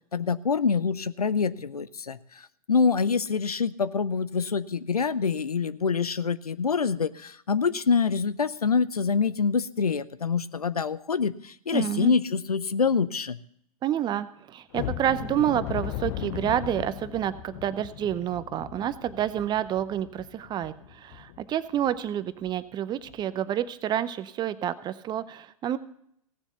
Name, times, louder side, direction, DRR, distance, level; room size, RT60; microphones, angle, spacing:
voice 1, 0.1-13.4, left 5 dB, 90° left, 16 dB, 0.6 m, -26 dB
voice 2, 11.7-12.1 13.8-25.8, right 11 dB, 25° right, 15 dB, 0.7 m, -29 dB
sound 1, 14.7-21.5 21.8-22.0 22.4-22.6 23.0-23.2, left 13 dB, 45° left, 0.8 m, -37 dB
16.5 x 7.1 x 6.8 m, 0.70 s
figure-of-eight pair, 105°, 19 cm